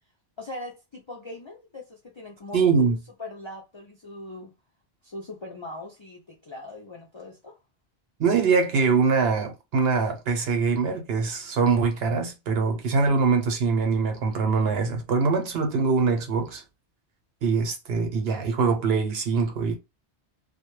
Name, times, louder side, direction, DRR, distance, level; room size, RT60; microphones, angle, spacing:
voice 1, 0.4-4.5 5.0-7.6, left 2 dB, 40° left, 0.4 m, -41 dB
voice 2, 2.5-3.0 8.2-16.6 17.4-19.7, right 4 dB, 65° right, 0.9 m, -23 dB
2.2 x 2.2 x 3.0 m
omnidirectional pair, 1.1 m